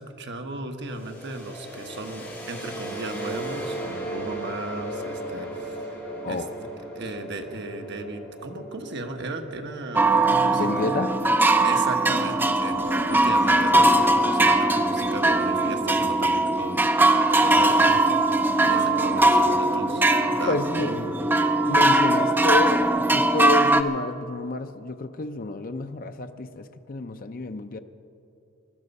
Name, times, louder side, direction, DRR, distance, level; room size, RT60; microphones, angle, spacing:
voice 1, 0.0-5.9 6.3-6.4 6.9-11.0 11.4-18.0 18.6-21.1, right 2 dB, 60° right, 4 dB, 1.3 m, -35 dB
sound 1, 0.9-12.6, right 1 dB, 10° left, 4.0 m, -37 dB
sound 2, 10.0-23.8, right 2 dB, 10° right, 0.5 m, -20 dB
voice 2, 10.5-11.2 20.5-20.9 21.7-27.8, left 2 dB, 45° left, 8 dB, 0.6 m, -29 dB
sound 3, 18.6-22.5, right 4 dB, 85° left, 1.9 m, -42 dB
20.0 x 12.0 x 5.4 m, 2.7 s
head